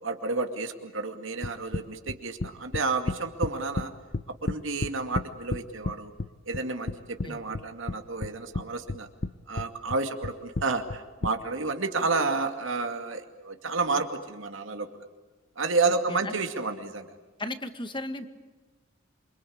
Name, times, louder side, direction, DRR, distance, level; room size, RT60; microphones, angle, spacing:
voice 1, 0.0-3.9 4.4-6.1 6.5-9.1 9.5-14.9 15.6-17.1, right 3 dB, 65° right, 6 dB, 2.4 m, -30 dB
sound 1, 1.4-3.9 4.1-5.9 6.2-7.3 7.5-8.6 8.9-9.3 9.6-11.3, left 2 dB, 50° left, 0.8 m, -31 dB
voice 2, 15.8-16.4 17.4-18.2, left 1 dB, 25° left, 9 dB, 1.8 m, -36 dB
28.0 x 24.5 x 8.7 m, 1.3 s
head